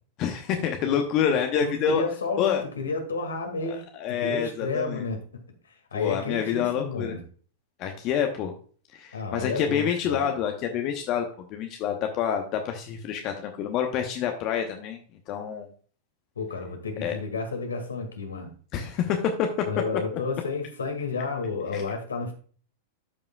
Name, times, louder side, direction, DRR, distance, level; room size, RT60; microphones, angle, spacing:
voice 1, 0.2-2.0 2.4-2.6 3.7-5.0 5.9-7.1 7.8-8.5 8.9-15.0 15.3-15.7 17.0-17.1 18.7-19.5 21.7-21.8, left 8 dB, 40° left, 4 dB, 0.9 m, -27 dB
voice 2, 0.9-3.8 4.1-5.2 5.7-7.2 9.1-10.3 16.4-18.5 19.7-22.3, left 4 dB, 75° left, 4 dB, 1.9 m, -31 dB
12.5 x 5.4 x 2.3 m, 0.43 s
figure-of-eight pair, 95°, 0 cm